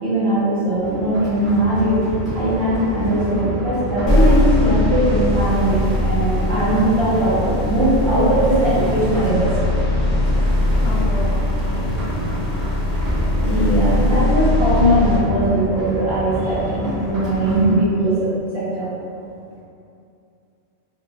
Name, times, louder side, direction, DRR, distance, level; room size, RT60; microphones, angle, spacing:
voice 1, 0.0-2.0 2.3-9.8 13.1-18.3 18.5-18.9, right 1 dB, 60° right, -11 dB, 1.1 m, -20 dB
sound 1, 0.7-17.7, equal, ahead, 0.8 m, -28 dB
sound 2, 4.1-15.2, left 1 dB, 40° left, 1.3 m, -20 dB
voice 2, 10.8-12.1, left 1 dB, 80° left, -4 dB, 0.8 m, -31 dB
2.9 x 2.3 x 2.3 m, 2.6 s
omnidirectional pair, 1.2 m